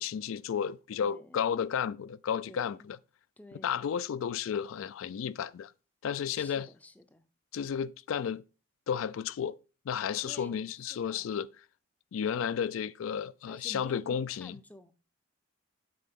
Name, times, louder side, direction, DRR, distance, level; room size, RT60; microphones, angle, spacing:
voice 1, 0.0-3.0 3.6-5.7 6.0-6.7 7.5-8.4 8.9-9.6 9.9-11.5 12.1-14.5, left 8 dB, 70° left, 0.3 m, -32 dB
voice 2, 1.0-1.4 2.5-2.9 3.4-3.9 6.3-7.2 10.2-11.4 13.5-14.9, left 1 dB, 5° left, 0.4 m, -51 dB
7.7 x 5.0 x 3.6 m
head